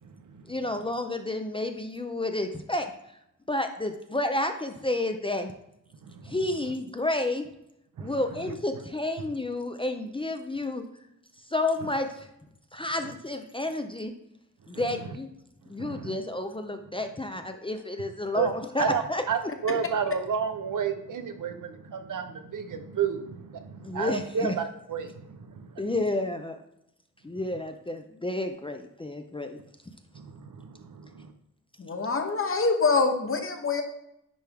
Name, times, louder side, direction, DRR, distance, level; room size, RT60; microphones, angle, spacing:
voice 1, 0.5-2.9 3.5-5.5 6.2-7.5 8.0-10.8 11.5-12.3 12.7-14.1 14.7-15.3 15.7-19.2 23.8-24.5 25.8-26.6 27.2-29.6, left 2 dB, 15° left, 6 dB, 0.5 m, -30 dB
voice 2, 15.8-16.2 18.3-18.5 18.8-19.0 19.3-25.6 30.2-31.3, right 7 dB, 70° right, 7 dB, 0.8 m, -31 dB
voice 3, 31.8-33.8, left 4 dB, 40° left, 5 dB, 1.0 m, -25 dB
10.0 x 3.4 x 3.5 m, 0.80 s
wide cardioid pair, 100°, 33 cm